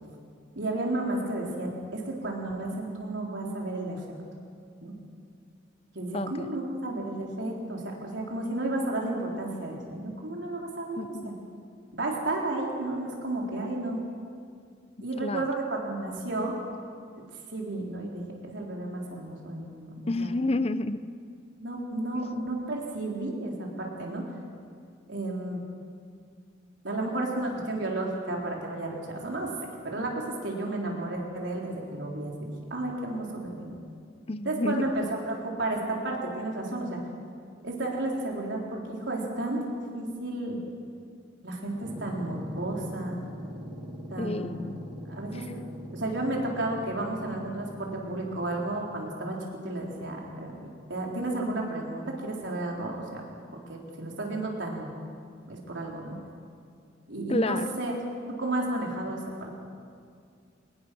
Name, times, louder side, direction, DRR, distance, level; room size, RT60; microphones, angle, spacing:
voice 1, 0.5-4.0 4.8-4.9 5.9-11.3 11.9-14.0 15.0-16.6 17.5-20.3 21.6-24.3 25.1-25.6 26.8-29.5 29.8-33.8 34.5-37.0 37.6-39.7 39.9-40.6 41.4-43.2 44.1-44.7 45.1-45.5 45.9-53.2 53.7-54.9 55.5-56.2 57.1-57.9 58.3-59.5, right 2 dB, 80° right, -1 dB, 4.0 m, -32 dB
voice 2, 6.1-6.6 11.0-11.4 15.2-15.5 20.1-21.1 34.3-35.1 44.2-44.8 45.3-45.5 57.3-57.7, left 2 dB, 30° left, 13 dB, 0.6 m, -30 dB
sound 1, 41.7-49.0, equal, 25° right, 3.1 m, -41 dB
23.0 x 20.5 x 6.2 m, 2.3 s
head